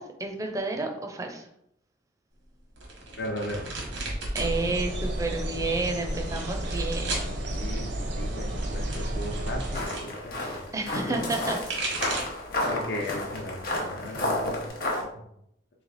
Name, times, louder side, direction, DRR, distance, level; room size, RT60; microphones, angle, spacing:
voice 1, 0.0-1.5 4.3-7.1 10.7-11.7, right 2 dB, 20° right, 4 dB, 0.4 m, -31 dB
sound 1, 2.8-4.5 4.8-5.5 6.1-7.3 8.3-10.1 11.3-12.4 12.9-13.3 13.7-14.7, right 2 dB, 85° right, 1.2 m, -36 dB
voice 2, 3.2-3.6 7.4-10.6 10.9-11.2 12.6-14.6 15.0-15.3, left 1 dB, 75° left, 0 dB, 0.6 m, -36 dB
sound 2, 4.4-9.8, right 1 dB, 70° right, 0.7 m, -31 dB
sound 3, 9.7-15.0, left 1 dB, 50° left, 0.9 m, -31 dB
3.2 x 3.1 x 4.0 m, 0.76 s
head